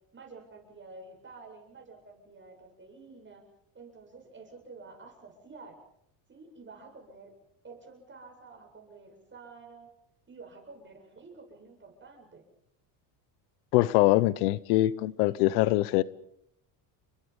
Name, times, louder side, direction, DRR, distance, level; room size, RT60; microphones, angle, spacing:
voice 1, 0.1-3.4 3.7-5.8 6.3-7.3 7.6-9.9 10.3-12.4, right 4 dB, 25° right, 8.0 m, -50 dB
voice 2, 13.7-16.0, left 17 dB, 90° left, 1.0 m, -23 dB
30.0 x 23.0 x 5.5 m
cardioid pair, 120°, 47 cm